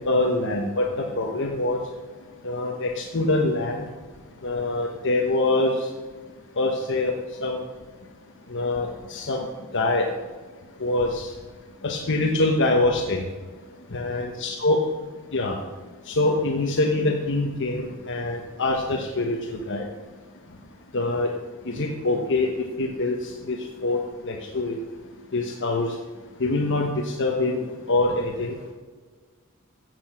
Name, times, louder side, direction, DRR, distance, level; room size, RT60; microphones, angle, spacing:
voice 1, 0.1-1.8 2.4-3.9 4.4-5.8 6.6-7.1 7.4-7.6 8.5-9.5 9.7-10.1 10.8-11.3 11.8-13.2 13.9-14.8 15.3-15.6 16.1-19.8 20.9-21.3 21.6-22.5 22.8-23.6 23.8-24.0 24.2-24.8 25.3-25.9 26.4-28.5, left 2 dB, 60° left, 2 dB, 1.2 m, -24 dB
15.5 x 7.8 x 6.2 m, 1.4 s
head